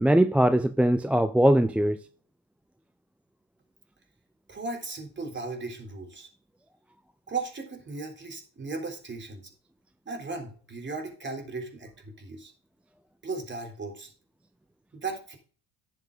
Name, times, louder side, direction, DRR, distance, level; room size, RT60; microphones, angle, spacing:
voice 1, 0.0-2.0, right 1 dB, 5° right, 0.4 m, -21 dB
voice 2, 4.5-6.3 7.3-9.4 10.1-12.5 13.2-14.1 14.9-15.4, right 3 dB, 25° right, 3.6 m, -36 dB
10.5 x 7.3 x 3.9 m
cardioid pair, 100°, 40 cm